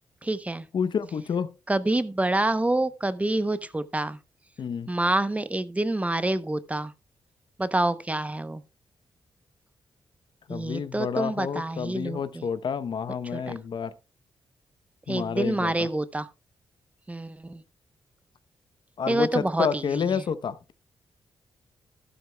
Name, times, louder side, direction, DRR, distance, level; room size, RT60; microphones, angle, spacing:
voice 1, 0.2-0.6 1.7-4.2 4.9-6.9 7.6-8.6 10.5-12.5 13.3-13.4 15.1-16.3 17.1-17.6 19.1-19.8, right 2 dB, 15° right, 0.7 m, -27 dB
voice 2, 0.7-1.5 4.6-4.9 10.5-14.0 15.1-15.9 19.0-20.6, left 6 dB, 60° left, 0.8 m, -29 dB
12.5 x 12.0 x 2.2 m
cardioid pair, 85°, 9 cm